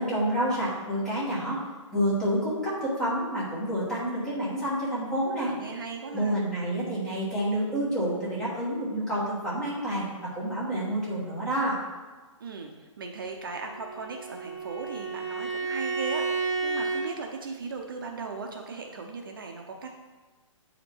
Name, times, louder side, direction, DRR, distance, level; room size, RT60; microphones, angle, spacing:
voice 1, 0.0-1.6 1.9-5.5 6.1-10.1 10.3-11.8, right 1 dB, 5° left, -9 dB, 1.2 m, -28 dB
voice 2, 5.4-6.4 12.4-19.9, right 4 dB, 45° right, 3 dB, 0.6 m, -38 dB
Bowed string instrument, 13.5-17.1, right 4 dB, 55° left, 2.5 m, -31 dB
8.4 x 5.0 x 4.5 m, 1.3 s
hypercardioid pair, 180°, 16 cm